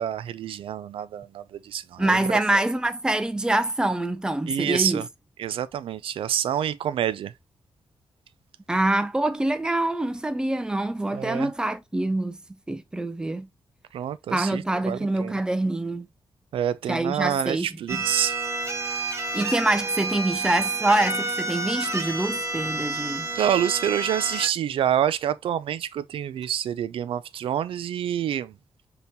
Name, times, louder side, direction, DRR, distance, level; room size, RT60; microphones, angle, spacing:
voice 1, 0.0-2.4 4.5-5.1 5.4-7.3 11.1-11.5 13.9-15.3 16.5-18.3 23.3-28.5, right 10 dB, 85° right, 0.4 m, -27 dB
voice 2, 2.0-5.0 8.7-12.4 12.7-13.5 14.3-16.1 16.9-18.0 19.3-23.3, right 1 dB, 10° right, 0.4 m, -25 dB
sound 1, 17.9-24.5, right 3 dB, 30° right, 0.8 m, -30 dB
5.2 x 2.9 x 2.7 m
wide cardioid pair, 170°, 9 cm